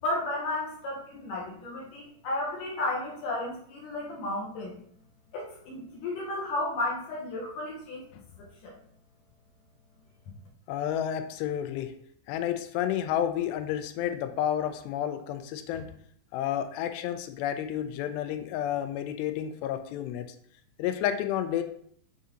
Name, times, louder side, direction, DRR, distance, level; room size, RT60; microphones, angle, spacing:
voice 1, 0.0-4.8 5.3-8.0 8.4-8.7, left 2 dB, 70° left, -2 dB, 2.1 m, -33 dB
voice 2, 10.7-11.9 12.3-15.9 16.3-20.3 20.8-21.6, left 10 dB, 90° left, 8 dB, 2.8 m, -31 dB
6.8 x 4.0 x 3.7 m, 0.63 s
omnidirectional pair, 4.8 m